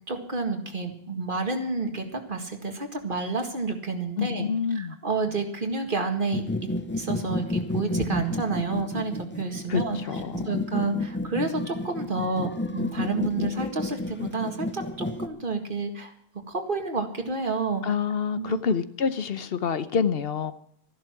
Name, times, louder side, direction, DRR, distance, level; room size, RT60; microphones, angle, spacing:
voice 1, 0.1-16.1 16.5-17.8 18.4-18.8, right 3 dB, 55° right, 5 dB, 2.1 m, -30 dB
voice 2, 4.2-4.9 9.7-9.8 10.1-10.5 17.8-20.5, left 6 dB, 70° left, 13 dB, 1.0 m, -27 dB
sound 1, 6.3-15.3, left 1 dB, 15° left, 0.5 m, -31 dB
13.5 x 11.5 x 6.1 m, 0.66 s
omnidirectional pair, 1.0 m